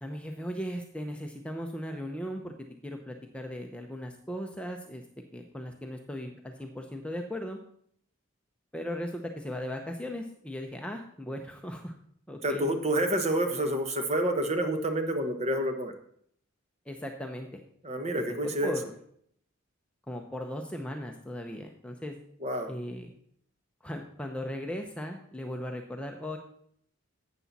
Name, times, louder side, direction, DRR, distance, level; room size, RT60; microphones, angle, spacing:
voice 1, 0.0-2.5 2.8-5.0 5.3-7.6 8.7-11.9 12.3-12.7 16.9-17.5 18.6-18.9 20.1-22.1 22.7-23.1 23.8-26.4, equal, 5° left, 3 dB, 0.7 m, -37 dB
voice 2, 12.4-15.9 17.8-18.8 22.4-22.7, right 1 dB, 30° right, 5 dB, 1.1 m, -28 dB
12.0 x 8.3 x 4.1 m, 0.66 s
head